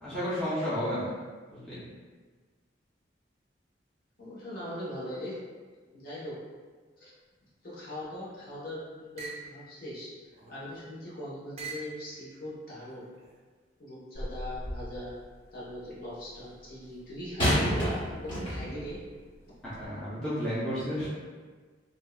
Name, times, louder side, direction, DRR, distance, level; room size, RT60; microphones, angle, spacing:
voice 1, 0.0-1.1 1.5-1.8 19.8-21.1, equal, 5° left, -13 dB, 0.7 m, -32 dB
voice 2, 4.2-5.4 5.9-6.3 7.0-7.1 7.6-10.1 10.5-13.1 13.8-15.1 15.5-19.0, left 1 dB, 55° left, -8 dB, 1.1 m, -40 dB
sound 1, 8.2-8.6 9.2-9.5 10.3-10.9 11.6-12.0 12.8-13.4, right 4 dB, 35° right, 0.4 m, -44 dB
sound 2, 14.1-15.0 17.4-18.9 19.7-19.8, equal, 25° left, 1.3 m, -30 dB
3.5 x 2.7 x 2.4 m, 1.5 s
head